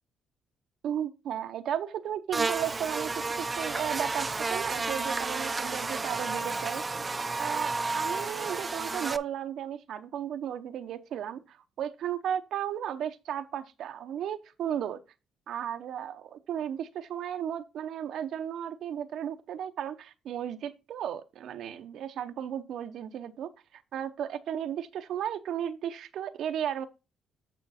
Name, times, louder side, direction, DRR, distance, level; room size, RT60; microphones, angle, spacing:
voice 1, 0.8-6.8 7.4-15.0 15.5-23.5 23.9-26.9, right 9 dB, 75° right, 0.7 m, -34 dB
Buzz, 2.3-9.2, right 3 dB, 25° right, 0.5 m, -31 dB
9.1 x 4.5 x 4.1 m
cardioid pair, 90°, 0 cm